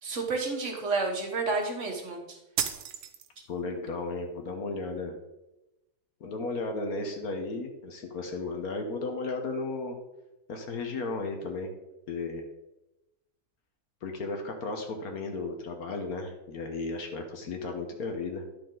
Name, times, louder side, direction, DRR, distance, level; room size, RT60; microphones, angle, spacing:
voice 1, 0.0-2.4, right 3 dB, 50° right, 2 dB, 1.7 m, -30 dB
sound 1, 2.6-3.6, right 8 dB, 75° right, 1.3 m, -33 dB
voice 2, 3.5-5.2 6.2-10.0 10.5-11.7 12.1-12.4 14.0-18.4, left 3 dB, 70° left, 3 dB, 1.5 m, -34 dB
10.5 x 6.7 x 3.8 m, 0.97 s
omnidirectional pair, 1.7 m